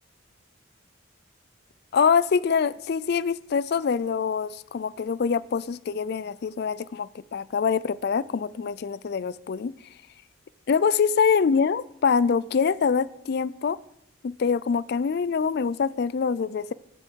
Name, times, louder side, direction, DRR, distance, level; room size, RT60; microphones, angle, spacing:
voice 1, 1.9-9.7 10.7-13.8 14.2-16.7, left 6 dB, 55° left, 19 dB, 0.4 m, -24 dB
15.0 x 11.0 x 4.5 m, 0.79 s
head